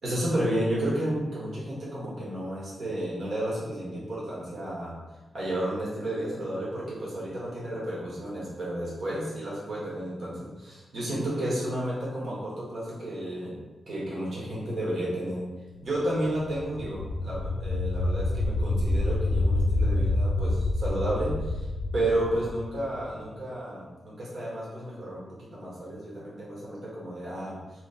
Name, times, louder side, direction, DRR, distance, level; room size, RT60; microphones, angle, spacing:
voice 1, 0.0-4.9 5.3-13.5 13.9-15.4 15.8-21.6 21.9-27.6, right 1 dB, 60° right, -7 dB, 1.3 m, -32 dB
sound 1, 16.4-23.1, left 2 dB, 75° left, 0.3 m, -27 dB
3.0 x 2.9 x 4.1 m, 1.2 s
wide cardioid pair, 120°, 0 cm